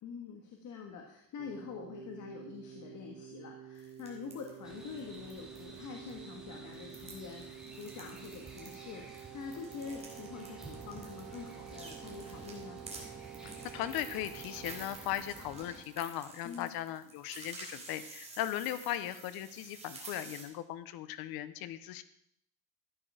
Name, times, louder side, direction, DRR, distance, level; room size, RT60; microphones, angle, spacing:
voice 1, 0.0-12.8 16.4-16.7, left 6 dB, 55° left, 1 dB, 1.9 m, -45 dB
Keyboard (musical), 1.4-16.4, right 10 dB, 50° right, 1.9 m, -50 dB
sound 1, 3.8-5.8 6.1-6.2 6.7-20.4, right 3 dB, 20° right, 3.7 m, -51 dB
sound 2, 4.6-15.8, right 1 dB, ahead, 3.2 m, -52 dB
voice 2, 13.4-22.0, left 12 dB, 80° left, 13 dB, 1.0 m, -38 dB
13.5 x 10.0 x 5.0 m, 0.72 s
cardioid pair, 135°, 36 cm